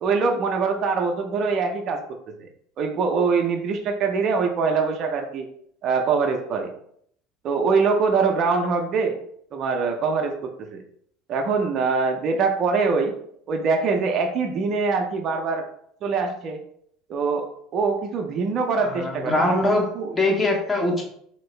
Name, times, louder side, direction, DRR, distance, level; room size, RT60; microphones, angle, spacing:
voice 1, 0.0-2.5 2.8-5.5 5.8-6.7 7.4-9.2 9.5-10.8 11.3-13.1 13.5-15.7 16.0-16.6 17.1-20.1, right 4 dB, 50° right, 3 dB, 0.5 m, -23 dB
voice 2, 18.8-21.0, left 2 dB, 20° left, 0 dB, 1.1 m, -23 dB
2.8 x 2.6 x 3.2 m, 0.67 s
hypercardioid pair, 80°, 0 cm